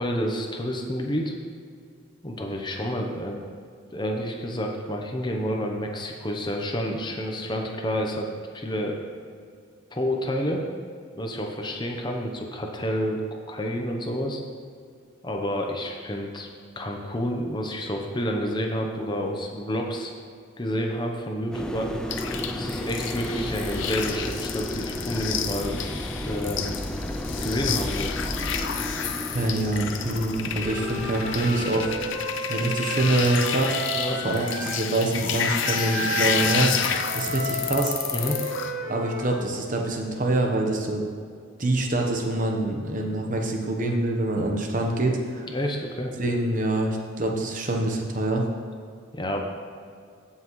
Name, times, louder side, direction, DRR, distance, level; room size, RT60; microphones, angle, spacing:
voice 1, 0.0-1.3 2.2-3.4 3.9-8.3 8.5-9.0 9.9-10.6 11.2-14.4 15.2-16.5 16.8-20.1 20.6-21.9 22.5-25.8 26.2-26.8 27.4-28.1 33.9-34.2 38.1-38.4 45.5-46.1 49.1-49.4, equal, 20° left, 2 dB, 0.8 m, -29 dB
sound 1, 21.5-32.2, left 1 dB, 5° left, 0.3 m, -33 dB
sound 2, 22.1-38.7, left 7 dB, 60° left, 0.6 m, -30 dB
voice 2, 29.3-32.0 32.5-33.7 34.2-36.7 37.1-38.0 38.9-41.0 41.6-45.5 46.2-48.4, right 2 dB, 40° right, 1 dB, 1.0 m, -25 dB
Wind instrument woodwind instrument, 30.6-34.8 35.6-39.5, right 1 dB, 75° right, 1.5 m, -32 dB
15.5 x 5.7 x 3.1 m, 2.2 s
head